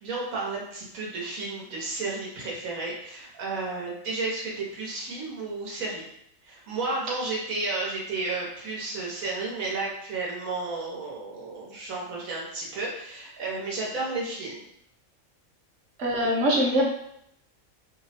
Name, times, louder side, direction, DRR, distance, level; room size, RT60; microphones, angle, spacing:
voice 1, 0.0-6.0 6.4-14.6, right 3 dB, 90° right, -4 dB, 1.3 m, -32 dB
voice 2, 16.0-16.8, equal, 65° right, -2 dB, 1.1 m, -23 dB
3.0 x 2.0 x 4.1 m, 0.73 s
omnidirectional pair, 1.4 m